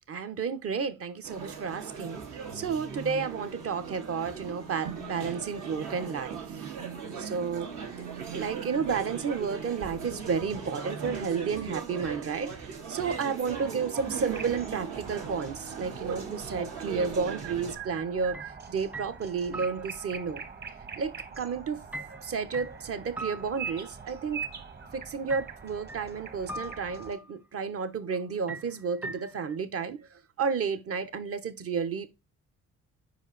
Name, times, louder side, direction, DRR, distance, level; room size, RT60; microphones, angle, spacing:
voice 1, 0.1-2.2 2.5-6.4 7.2-7.7 8.0-12.5 12.9-18.4 18.7-20.4 21.0-21.8 22.1-24.4 24.9-30.0 30.4-32.1, right 5 dB, 50° right, 1.0 m, -32 dB
sound 1, 1.2-17.7, right 6 dB, 75° right, 2.2 m, -38 dB
sound 2, 14.2-27.1, right 6 dB, 35° right, 1.3 m, -43 dB
sound 3, 18.3-18.6 18.9-20.3 21.9-24.2 25.3-26.1 26.5-27.3 28.5-29.6, right 2 dB, 5° right, 0.5 m, -41 dB
5.1 x 4.8 x 4.0 m
cardioid pair, 90°, 30 cm